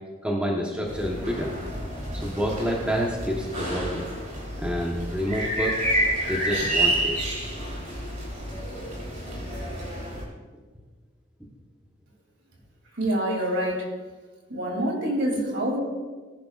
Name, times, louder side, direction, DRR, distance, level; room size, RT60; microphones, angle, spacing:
voice 1, 0.2-1.5 2.1-4.1 4.6-5.8 6.3-7.3, equal, 5° right, -2 dB, 1.2 m, -28 dB
sound 1, 0.8-10.2, right 1 dB, 40° right, 3.8 m, -29 dB
voice 2, 12.9-13.9 14.5-15.8, right 1 dB, 60° right, 0 dB, 3.1 m, -26 dB
19.0 x 10.5 x 2.5 m, 1.4 s
head